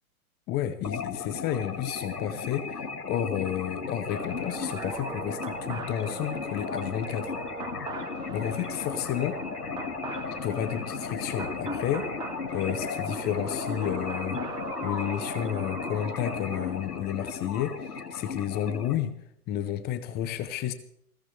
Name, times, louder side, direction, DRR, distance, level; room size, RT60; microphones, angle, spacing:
voice 1, 0.5-7.3 8.3-9.4 10.3-14.4 14.8-19.1 19.5-20.7, left 10 dB, 20° left, 12 dB, 0.8 m, -31 dB
sound 1, 0.8-19.0, left 5 dB, 80° left, 2.1 m, -35 dB
sound 2, 4.1-17.0, right 6 dB, 10° right, 0.6 m, -41 dB
20.0 x 16.0 x 3.3 m, 0.72 s
figure-of-eight pair, 115°, 45 cm